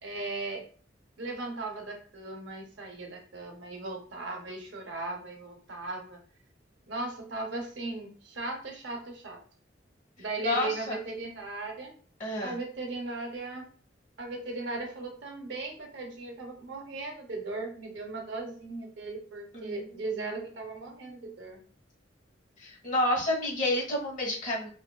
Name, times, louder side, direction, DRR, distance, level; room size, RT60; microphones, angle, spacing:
voice 1, 0.0-0.6 1.2-6.2 6.9-9.4 10.2-11.9 12.4-13.6 14.2-21.6, right 3 dB, 75° right, 2 dB, 0.6 m, -37 dB
voice 2, 10.4-11.0 12.2-12.5 19.5-19.7 22.6-24.7, left 1 dB, 45° left, -1 dB, 1.1 m, -29 dB
2.5 x 2.3 x 2.3 m, 0.43 s
head